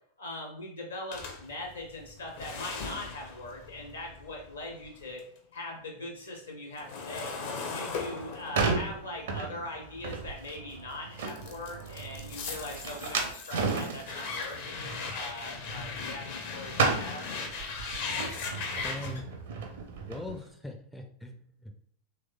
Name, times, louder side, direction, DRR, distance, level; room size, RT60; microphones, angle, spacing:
voice 1, 0.2-5.2 5.5-7.3 7.6-17.3, left 1 dB, 70° left, 1 dB, 1.0 m, -41 dB
sound 1, 1.1-5.4 5.7-10.6 11.2-19.2, left 4 dB, 50° left, 0.6 m, -39 dB
sound 2, 8.1-16.5 16.7-20.4, right 4 dB, 60° right, 0.6 m, -34 dB
voice 2, 18.8-19.3 20.0-21.8, left 2 dB, 5° left, 3 dB, 0.4 m, -41 dB
3.4 x 3.0 x 2.3 m, 0.62 s
figure-of-eight pair, 90°, 0 cm